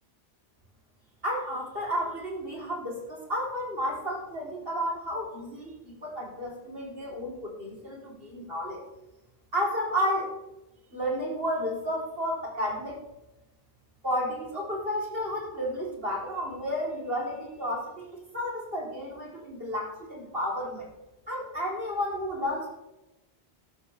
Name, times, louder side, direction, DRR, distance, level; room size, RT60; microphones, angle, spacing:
voice 1, 1.2-8.8 9.5-10.3 10.9-13.0 14.0-20.9 21.3-22.7, equal, 65° right, -2 dB, 3.9 m, -32 dB
13.5 x 12.5 x 3.5 m, 0.97 s
omnidirectional pair, 1.1 m